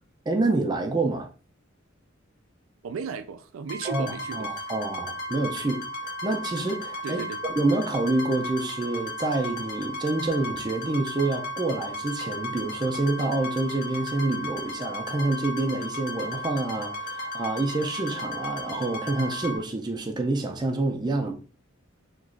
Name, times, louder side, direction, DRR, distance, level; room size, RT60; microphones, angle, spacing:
voice 1, 0.3-1.3 3.8-4.1 4.3-7.2 7.6-21.3, right 2 dB, 20° right, 0.5 m, -27 dB
voice 2, 2.8-4.6 7.0-7.4, right 6 dB, 80° right, 0.4 m, -35 dB
sound 1, 3.7-19.6, left 1 dB, 45° left, 0.8 m, -35 dB
2.9 x 2.4 x 3.7 m
head